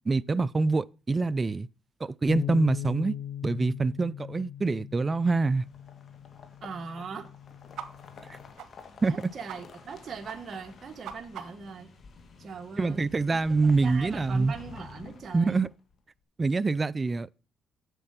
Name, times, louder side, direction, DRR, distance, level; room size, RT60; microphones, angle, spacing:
voice 1, 0.0-1.7 2.0-3.1 3.4-5.6 8.3-8.4 9.0-9.3 12.8-14.5 15.3-15.7 16.4-17.3, right 3 dB, 30° right, 0.4 m, -25 dB
Bass guitar, 2.3-8.5, left 10 dB, 80° left, 0.8 m, -39 dB
sound 1, 5.1-15.9, left 4 dB, 50° left, 2.0 m, -50 dB
voice 2, 6.6-7.3 9.0-11.9 12.4-13.0 13.6-15.5, right 5 dB, 50° right, 1.1 m, -40 dB
sound 2, 7.7-7.9 8.1-8.3 8.6-8.7 9.0-9.1 9.5-9.6 9.8-10.0 10.2-10.4 10.7-11.7, right 8 dB, 75° right, 1.3 m, -41 dB
8.0 x 7.5 x 5.7 m
cardioid pair, 90°, 0 cm